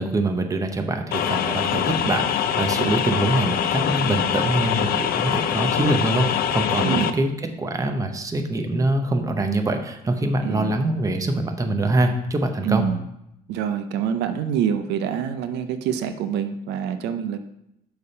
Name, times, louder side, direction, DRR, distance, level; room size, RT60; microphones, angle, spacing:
voice 1, 0.0-12.9, right 2 dB, 20° right, 5 dB, 0.8 m, -24 dB
sound 1, 1.1-7.1, left 9 dB, 60° left, 0.5 m, -23 dB
voice 2, 10.4-10.8 12.6-13.0 13.5-17.4, right 8 dB, 85° right, 9 dB, 0.5 m, -26 dB
6.7 x 3.4 x 5.4 m, 0.83 s
cardioid pair, 110°, 17 cm